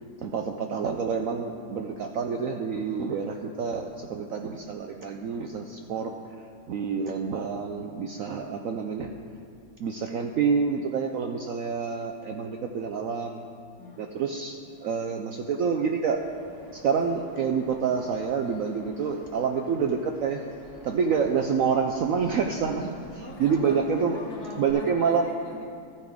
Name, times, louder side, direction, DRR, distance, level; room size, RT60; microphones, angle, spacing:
voice 1, 0.2-6.1 6.7-9.1 9.8-13.4 14.0-16.2 16.7-20.4 20.8-24.2 24.6-25.3, right 6 dB, 70° right, 4 dB, 0.8 m, -27 dB
voice 2, 13.8-14.1 23.2-25.7, left 1 dB, 60° left, -2 dB, 2.0 m, -42 dB
Bird vocalization bird call bird song, 16.1-24.7, equal, 25° left, 3.5 m, -51 dB
13.5 x 9.4 x 3.6 m, 2.3 s
omnidirectional pair, 1.9 m